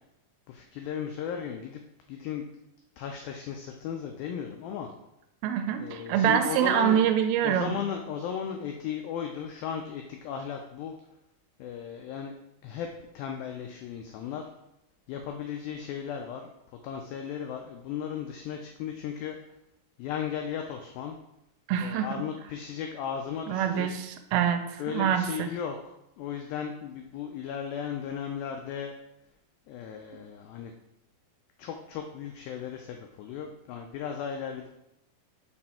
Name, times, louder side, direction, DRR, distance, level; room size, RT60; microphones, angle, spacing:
voice 1, 0.5-1.8 2.1-2.5 3.0-4.9 5.8-7.0 7.4-10.9 11.6-12.3 12.6-12.9 13.2-14.4 15.1-16.5 16.8-19.4 20.0-21.2 21.8-23.9 24.8-25.8 26.2-28.9 29.7-30.7 31.6-34.7, left 8 dB, 85° left, 3 dB, 2.0 m, -36 dB
voice 2, 5.4-7.8 21.7-22.2 23.5-25.5, right 9 dB, 80° right, 7 dB, 2.3 m, -25 dB
5.8 x 4.3 x 4.2 m, 0.85 s
omnidirectional pair, 4.8 m